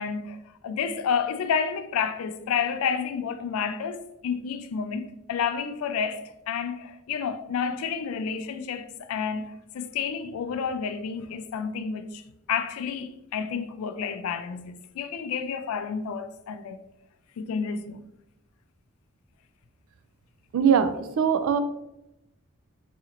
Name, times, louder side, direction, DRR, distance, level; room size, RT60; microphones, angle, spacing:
voice 1, 0.0-12.2 12.5-16.8 17.4-18.0, left 6 dB, 85° left, 0.3 m, -30 dB
voice 2, 20.5-21.6, right 7 dB, 80° right, 0.3 m, -22 dB
4.1 x 2.9 x 2.5 m
head